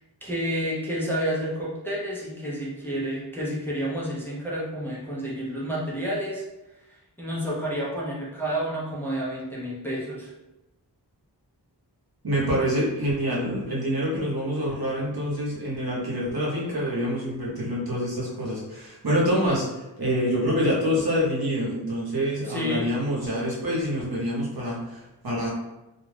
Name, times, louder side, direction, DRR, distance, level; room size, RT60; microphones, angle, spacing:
voice 1, 0.2-6.4 6.9-10.3 22.4-22.8, equal, 5° left, -7 dB, 0.6 m, -30 dB
voice 2, 12.2-19.7 20.0-25.5, equal, 60° right, -5 dB, 1.0 m, -26 dB
2.4 x 2.3 x 3.2 m, 1.0 s
wide cardioid pair, 75°, 42 cm